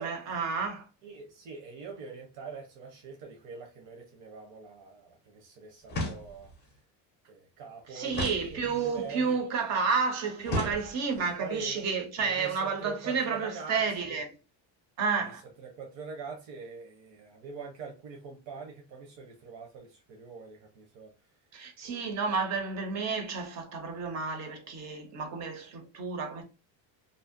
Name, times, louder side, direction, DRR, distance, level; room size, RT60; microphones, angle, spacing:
voice 1, 0.0-0.8 7.9-14.3 15.0-15.4 21.5-26.4, right 5 dB, 40° right, 0.5 m, -31 dB
voice 2, 1.0-6.7 7.3-9.4 10.4-10.7 11.4-11.9 12.2-14.2 15.6-21.1 21.8-22.2, right 4 dB, 80° right, 0.8 m, -43 dB
sound 1, 5.9-6.6 8.1-9.1 10.4-11.3, left 1 dB, 25° left, 0.5 m, -35 dB
2.6 x 2.0 x 2.4 m
cardioid pair, 155°, 45 cm